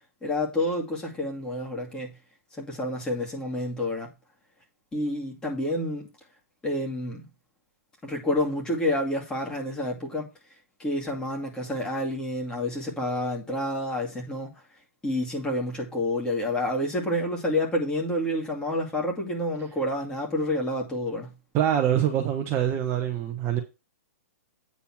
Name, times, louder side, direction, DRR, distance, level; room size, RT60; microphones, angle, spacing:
voice 1, 0.2-2.1 2.6-4.1 4.9-6.1 6.6-7.3 8.0-10.3 10.8-14.5 15.0-21.3, left 1 dB, 10° left, 2.4 m, -29 dB
voice 2, 21.5-23.6, right 10 dB, 25° right, 1.1 m, -24 dB
8.9 x 4.1 x 5.9 m
hypercardioid pair, 145°, 8 cm